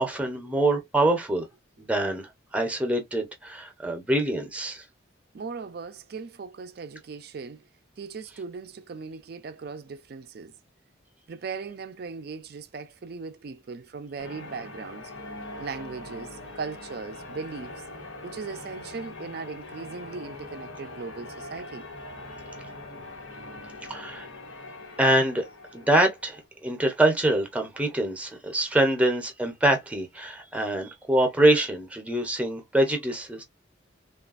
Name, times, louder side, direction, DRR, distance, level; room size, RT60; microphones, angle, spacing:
voice 1, 0.0-1.5 1.8-4.8 23.9-24.3 25.0-25.4 25.7-33.4, right 1 dB, 5° right, 0.6 m, -25 dB
voice 2, 5.3-7.6 8.0-10.5 11.3-15.1 15.6-17.8 18.2-21.9, right 5 dB, 50° right, 0.4 m, -38 dB
Church bell, 14.2-26.5, left 2 dB, 85° left, 1.2 m, -42 dB
3.2 x 2.3 x 2.4 m
head